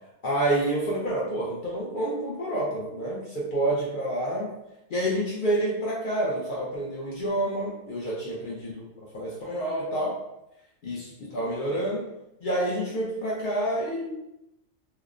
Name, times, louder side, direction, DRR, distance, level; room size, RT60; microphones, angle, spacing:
voice 1, 0.2-4.5 4.9-8.8 9.1-10.2 10.8-12.0 12.4-14.2, right 1 dB, 60° left, -6 dB, 0.5 m, -28 dB
3.0 x 2.0 x 2.3 m, 0.87 s
omnidirectional pair, 1.4 m